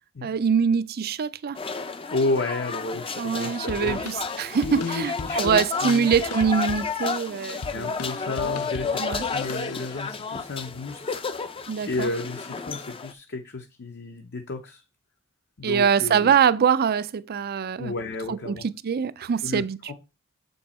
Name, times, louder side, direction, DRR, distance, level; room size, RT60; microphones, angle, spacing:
voice 1, 0.2-1.6 3.2-8.0 9.0-9.3 11.7-12.1 15.6-17.9 18.3-19.9, right 7 dB, 45° right, 0.4 m, -24 dB
sound 1, 1.5-13.1, left 4 dB, 25° left, 0.5 m, -32 dB
voice 2, 2.1-4.0 4.6-6.1 7.7-11.2 11.8-14.8 15.6-16.3 17.8-18.6 19.4-19.9, left 3 dB, 50° left, 0.8 m, -32 dB
sound 2, 3.7-10.1, left 4 dB, 85° left, 0.7 m, -40 dB
7.7 x 5.3 x 4.2 m
head